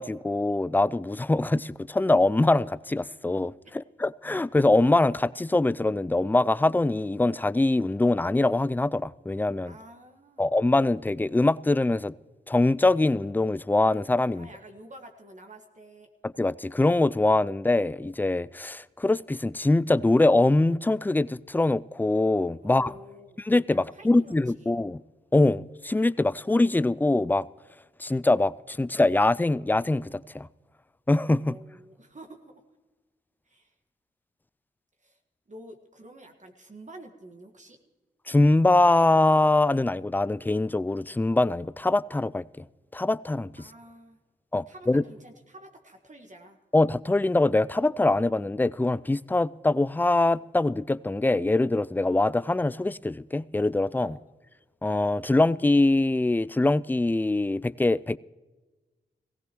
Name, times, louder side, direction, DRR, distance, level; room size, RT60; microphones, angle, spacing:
voice 1, 0.0-9.8 10.4-12.1 12.5-14.5 16.4-23.0 23.4-25.0 25.3-27.5 28.0-30.5 31.1-31.6 38.3-42.6 42.9-43.7 44.5-45.0 46.7-54.2 54.8-58.2, left 2 dB, 10° left, 0.3 m, -23 dB
voice 2, 9.6-10.5 14.3-16.1 22.6-23.4 23.7-24.7 31.4-32.6 33.4-33.7 35.0-35.2 35.5-37.8 43.6-44.2 44.7-46.6 54.0-54.2, right 1 dB, 40° right, 1.6 m, -48 dB
17.5 x 16.0 x 3.1 m
supercardioid pair, 45°, 20 cm